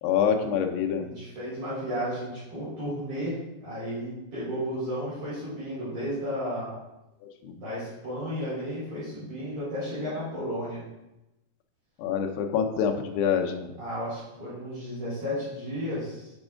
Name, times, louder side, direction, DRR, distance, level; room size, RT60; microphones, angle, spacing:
voice 1, 0.0-1.0 7.4-7.6 12.0-13.7, left 7 dB, 75° left, 4 dB, 2.8 m, -26 dB
voice 2, 1.0-6.7 7.5-10.8 13.8-16.3, equal, 35° right, -11 dB, 4.4 m, -33 dB
10.0 x 7.1 x 3.8 m, 0.94 s
omnidirectional pair, 5.1 m